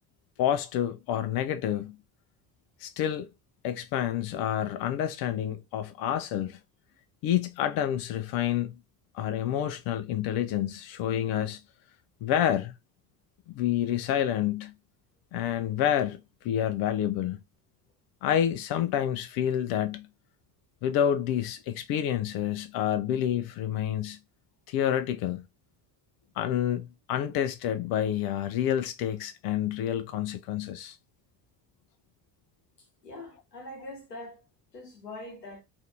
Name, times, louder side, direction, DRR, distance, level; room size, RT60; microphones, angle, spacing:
voice 1, 0.4-1.9 2.8-3.3 3.6-6.6 7.2-8.7 9.1-11.6 12.2-12.7 13.5-14.7 15.3-17.4 18.2-20.1 20.8-24.2 24.7-25.4 26.4-31.0, left 10 dB, 50° left, 0.6 m, -28 dB
voice 2, 32.8-34.4 34.7-35.6, left 1 dB, 90° left, 1.0 m, -43 dB
3.2 x 2.6 x 2.7 m
figure-of-eight pair, 55°, 47 cm